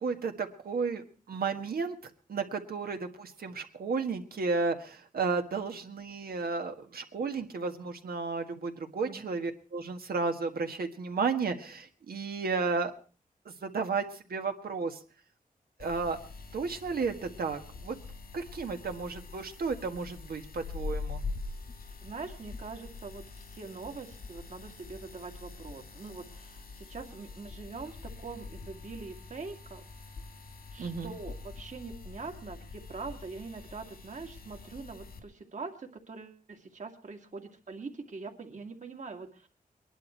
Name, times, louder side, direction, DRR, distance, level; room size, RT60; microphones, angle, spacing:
voice 1, 0.0-2.0 2.3-12.9 13.4-14.0 14.3-15.0 15.8-16.2 16.5-18.0 18.3-21.2 30.8-31.1, right 4 dB, 85° right, 6 dB, 1.7 m, -33 dB
sound 1, 15.8-35.2, left 4 dB, 90° left, 2.8 m, -44 dB
voice 2, 22.0-29.8 30.7-39.5, right 4 dB, 55° right, 4 dB, 2.3 m, -43 dB
22.0 x 11.0 x 4.5 m, 0.38 s
wide cardioid pair, 95°, 15 cm